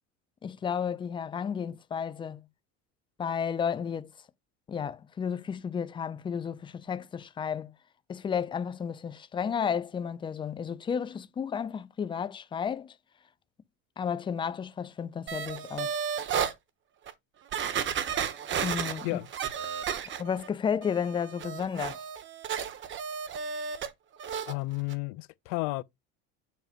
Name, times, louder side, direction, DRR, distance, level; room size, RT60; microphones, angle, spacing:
voice 1, 0.4-2.4 3.2-4.1 4.7-7.7 8.1-13.0 14.0-15.9 18.6-19.2 20.2-22.1, left 7 dB, 15° left, 0.4 m, -32 dB
sound 1, 15.3-16.5 17.1-17.2 17.5-20.5 20.8-23.9 24.2-24.5 24.9-25.0, right 7 dB, 35° right, 0.9 m, -33 dB
voice 2, 24.5-25.8, left 23 dB, 70° left, 0.5 m, -32 dB
7.1 x 2.5 x 5.6 m
supercardioid pair, 120°, 33 cm